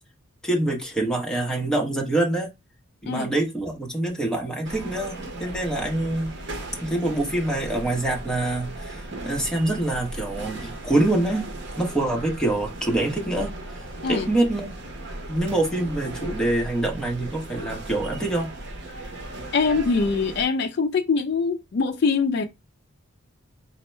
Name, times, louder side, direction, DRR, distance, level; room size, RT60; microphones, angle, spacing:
voice 1, 0.4-2.5 3.0-6.3 6.8-11.5 11.8-13.5 14.1-14.7 15.3-18.5, right 2 dB, 5° left, 0.8 m, -25 dB
sound 1, 4.6-20.5, right 2 dB, 55° right, 0.8 m, -37 dB
voice 2, 19.5-22.4, left 4 dB, 50° left, 0.3 m, -23 dB
4.3 x 2.0 x 4.2 m
head